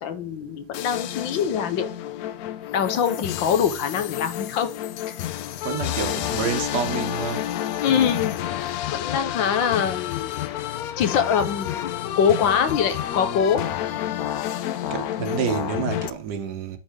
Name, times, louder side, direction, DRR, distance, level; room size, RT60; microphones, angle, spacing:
voice 1, 0.0-1.9 2.7-4.7 5.1-5.2 7.8-8.3 8.9-10.4 11.0-13.7, left 7 dB, 85° left, 1.7 m, -23 dB
sound 1, 0.7-16.1, left 12 dB, 70° left, 0.9 m, -29 dB
voice 2, 5.6-7.5 14.9-16.8, right 7 dB, 65° right, 1.5 m, -28 dB
10.5 x 4.2 x 3.6 m
omnidirectional pair, 2.0 m